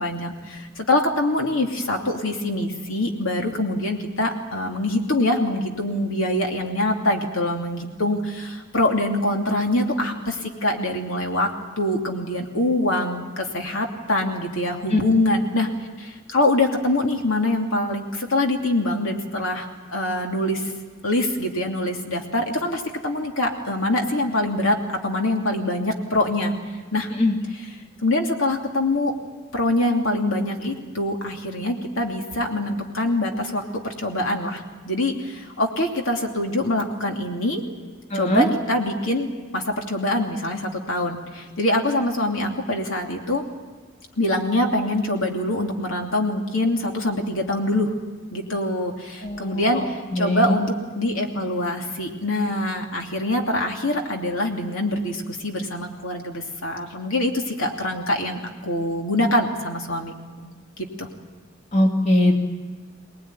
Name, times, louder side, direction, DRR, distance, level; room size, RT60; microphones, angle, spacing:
voice 1, 0.0-11.5 11.8-15.7 16.0-20.7 21.0-26.5 26.9-27.1 28.0-29.1 29.5-37.6 38.1-39.3 39.5-43.4 44.2-47.9 48.3-60.1 60.4-60.5 60.8-61.1, left 1 dB, 75° left, 2 dB, 2.9 m, -24 dB
voice 2, 38.1-38.5 49.2-49.8 50.1-50.5 61.7-62.3, left 1 dB, 35° left, 1 dB, 2.5 m, -20 dB
25.0 x 19.5 x 9.7 m, 1.4 s
head